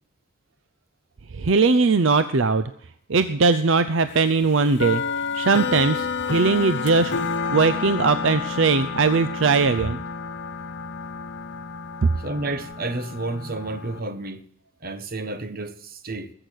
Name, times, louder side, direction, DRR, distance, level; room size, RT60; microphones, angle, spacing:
voice 1, 1.4-2.6 3.1-5.0 5.3-7.1 7.5-10.0 12.0-12.1, right 4 dB, 65° right, 0.6 m, -20 dB
sound 1, 4.2-14.0, left 5 dB, 55° left, 0.8 m, -30 dB
voice 2, 12.2-14.4 14.8-16.3, right 2 dB, 45° right, 1.1 m, -31 dB
20.5 x 8.0 x 6.4 m
head